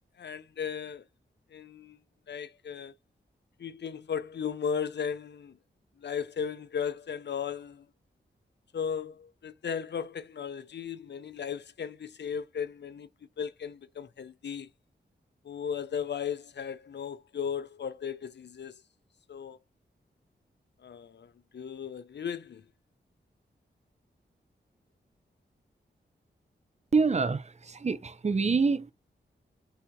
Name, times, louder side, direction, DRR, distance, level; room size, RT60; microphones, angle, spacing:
voice 1, 0.2-1.0 1.5-2.0 2.3-2.9 3.6-5.6 6.0-7.9 8.7-13.1 13.4-14.7 15.4-18.8 19.3-19.6 20.8-22.6, left 7 dB, 65° left, 0.6 m, -36 dB
voice 2, 26.9-28.9, right 4 dB, 35° right, 0.7 m, -26 dB
3.5 x 2.8 x 4.6 m
cardioid pair, 60°, 19 cm